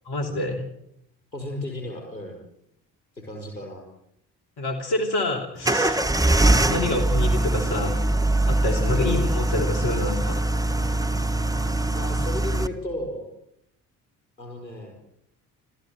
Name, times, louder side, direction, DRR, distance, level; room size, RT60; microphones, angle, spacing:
voice 1, 0.0-0.7 4.6-6.0 6.7-8.0 8.5-10.4, left 2 dB, 50° left, 3 dB, 3.1 m, -27 dB
voice 2, 1.3-2.4 3.1-3.9 6.4-6.6 8.9-9.2 11.9-13.3 14.4-15.0, left 1 dB, 90° left, 1 dB, 5.5 m, -34 dB
sound 1, 5.6-12.7, right 1 dB, 5° right, 1.4 m, -22 dB
29.5 x 14.0 x 7.8 m, 0.75 s
figure-of-eight pair, 45°, 49 cm